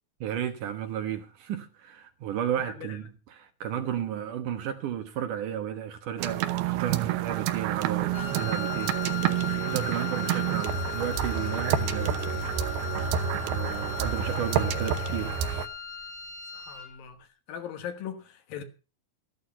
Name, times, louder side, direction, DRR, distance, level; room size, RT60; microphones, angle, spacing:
voice 1, 0.2-8.9 9.3-12.8 13.3-15.7 16.5-16.6, right 9 dB, 65° right, 2.5 m, -34 dB
voice 2, 2.6-3.0 16.6-17.2 17.5-18.6, left 8 dB, 70° left, 3.1 m, -39 dB
sound 1, 6.2-15.7, right 9 dB, 85° right, 2.9 m, -29 dB
Wind instrument woodwind instrument, 8.1-17.0, left 11 dB, 30° left, 1.7 m, -38 dB
13.5 x 11.5 x 5.6 m
omnidirectional pair, 4.3 m